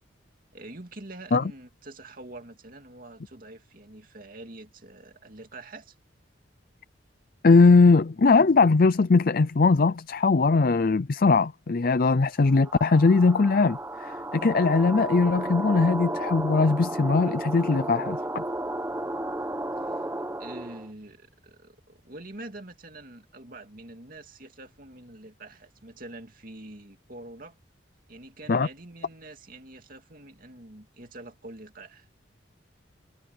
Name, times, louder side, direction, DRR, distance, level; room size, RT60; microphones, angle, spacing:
voice 1, 0.5-5.9 19.9-20.0 20.4-27.6 28.1-32.1, right 2 dB, 50° right, 2.5 m, -45 dB
voice 2, 7.4-18.4 28.5-28.7, left 4 dB, 50° left, 0.5 m, -20 dB
sound 1, 12.5-20.9, right 1 dB, 15° right, 1.0 m, -33 dB
head